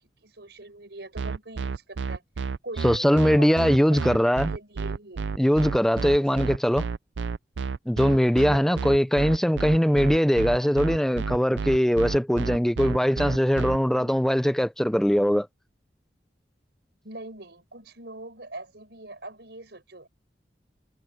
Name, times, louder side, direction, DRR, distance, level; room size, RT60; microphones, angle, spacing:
voice 1, 0.0-2.2 2.6-5.3 6.0-6.5 8.5-8.9 17.0-20.1, right 2 dB, 70° right, 7.2 m, -43 dB
sound 1, 1.2-13.8, right 5 dB, 90° right, 0.5 m, -30 dB
voice 2, 2.8-4.5 5.4-6.8 7.9-15.5, equal, 5° left, 0.7 m, -21 dB
head